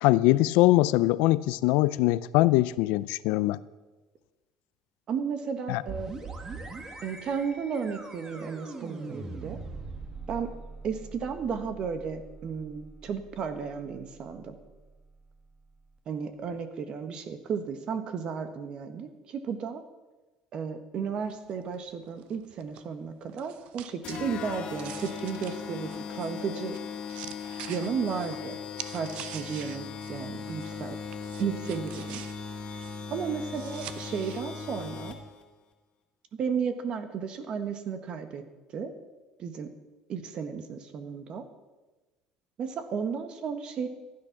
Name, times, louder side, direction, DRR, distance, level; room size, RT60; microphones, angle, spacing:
voice 1, 0.0-3.6 5.7-5.8, left 17 dB, 80° left, 18 dB, 0.4 m, -22 dB
voice 2, 5.1-6.1 7.0-9.6 10.3-10.5 10.8-14.6 16.1-19.8 20.5-26.8 27.7-28.6 28.9-31.0 31.4-32.2 33.1-35.2 36.4-38.4 38.7-38.9 39.4-39.7 40.1-41.4 42.6-43.9, right 6 dB, 50° right, 9 dB, 1.5 m, -33 dB
sound 1, 5.9-15.4, right 3 dB, 30° right, 1.8 m, -43 dB
sound 2, 21.2-30.9 31.1-34.4, right 11 dB, 70° right, 0.8 m, -46 dB
sound 3, 24.0-35.4, left 6 dB, 50° left, 1.8 m, -38 dB
15.0 x 9.9 x 6.0 m, 1.2 s
cardioid pair, 110°, 2 cm